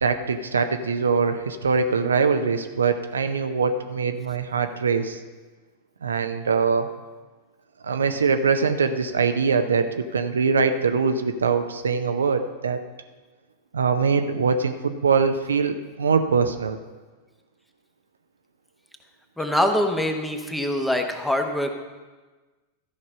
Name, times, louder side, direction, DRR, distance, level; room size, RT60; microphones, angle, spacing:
voice 1, 0.0-5.2 6.0-6.9 7.8-12.8 13.7-16.8, right 5 dB, 70° right, 8 dB, 0.6 m, -23 dB
voice 2, 19.4-21.7, left 1 dB, 5° left, 5 dB, 1.0 m, -24 dB
13.0 x 5.4 x 5.8 m, 1.3 s
figure-of-eight pair, 90°, 0 cm